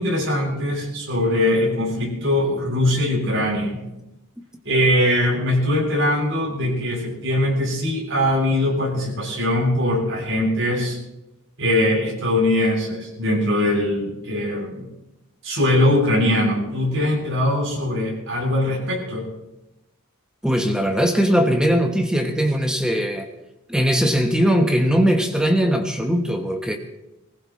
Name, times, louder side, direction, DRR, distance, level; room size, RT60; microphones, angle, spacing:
voice 1, 0.0-3.8 4.6-11.0 11.6-14.9 15.4-19.3, left 1 dB, 60° right, -2 dB, 7.7 m, -21 dB
voice 2, 20.4-23.3 23.7-26.8, equal, 5° right, 3 dB, 1.2 m, -20 dB
24.0 x 15.5 x 3.2 m, 0.94 s
head